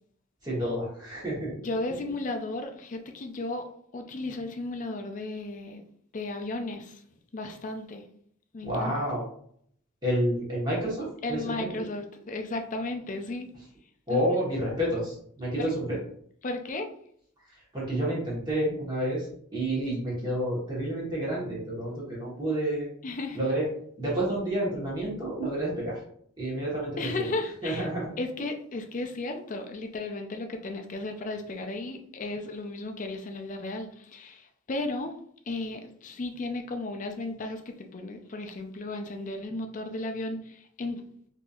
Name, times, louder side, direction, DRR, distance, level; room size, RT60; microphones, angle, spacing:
voice 1, 0.4-1.5 8.6-9.2 10.0-11.8 14.1-16.0 17.7-19.3 19.5-22.9 23.3-23.7 24.0-26.0 26.4-27.3 27.6-28.1, right 1 dB, 20° right, -6 dB, 1.1 m, -29 dB
voice 2, 1.6-3.7 3.9-5.8 6.1-7.0 7.3-8.0 8.5-8.9 11.2-13.5 14.1-14.2 15.6-15.7 16.4-16.9 23.0-23.4 27.0-27.9 28.2-35.1 35.5-41.0, left 2 dB, 40° left, 4 dB, 0.4 m, -34 dB
3.9 x 2.8 x 2.4 m, 0.65 s
head